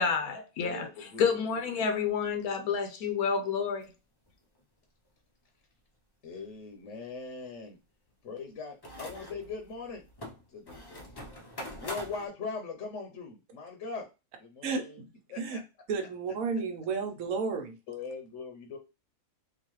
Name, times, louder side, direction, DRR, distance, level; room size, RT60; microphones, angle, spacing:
voice 1, 0.0-3.9, left 6 dB, 85° left, 1.2 m, -29 dB
voice 2, 0.6-1.4 6.2-7.8 8.2-10.0 10.5-11.3 11.8-14.0 14.4-15.0 15.3-15.6 17.9-18.8, left 4 dB, 65° left, 1.0 m, -40 dB
sound 1, 3.8-3.9 4.3-4.4 8.8-12.3, equal, 35° left, 0.4 m, -44 dB
voice 3, 14.6-15.1 15.4-15.6 15.9-17.7, right 5 dB, 70° right, 1.2 m, -32 dB
3.9 x 2.5 x 3.0 m
omnidirectional pair, 1.5 m